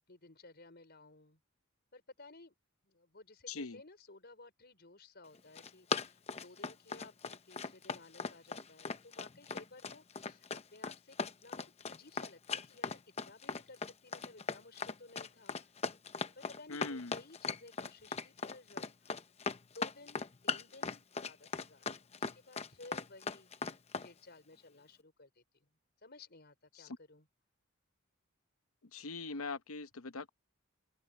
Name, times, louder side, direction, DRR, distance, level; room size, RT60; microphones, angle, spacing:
voice 1, 0.1-1.4 1.9-2.5 2.8-15.7 16.3-19.2 19.5-25.7 26.0-27.3, left 2 dB, 50° left, 5.1 m, -57 dB
voice 2, 3.5-3.8 16.7-17.2 26.7-27.0 28.9-30.3, left 3 dB, 80° left, 0.9 m, -42 dB
Run, 5.3-24.1, left 5 dB, 30° left, 0.7 m, -39 dB
open air
head